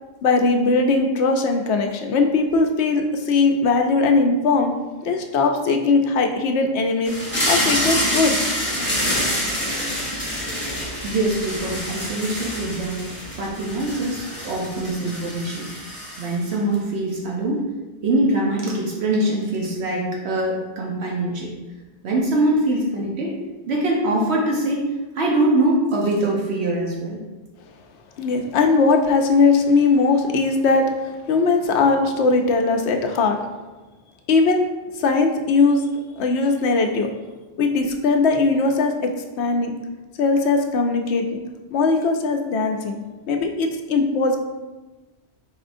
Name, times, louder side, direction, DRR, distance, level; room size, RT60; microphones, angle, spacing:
voice 1, 0.2-4.7 5.0-7.2 7.5-8.5 28.2-30.9 31.3-33.4 34.3-34.7 35.0-35.9 36.2-37.1 37.6-38.9 39.4-39.7 40.2-41.4 41.7-43.0 43.3-44.4, left 3 dB, 80° left, 4 dB, 0.9 m, -19 dB
sound 1, 7.0-16.5, equal, 10° left, 0.9 m, -26 dB
voice 2, 11.0-13.0 13.4-15.8 16.2-17.7 18.0-21.5 22.0-23.4 23.7-27.2, right 1 dB, 75° right, -2 dB, 1.0 m, -23 dB
4.7 x 4.3 x 2.6 m, 1.2 s
omnidirectional pair, 1.1 m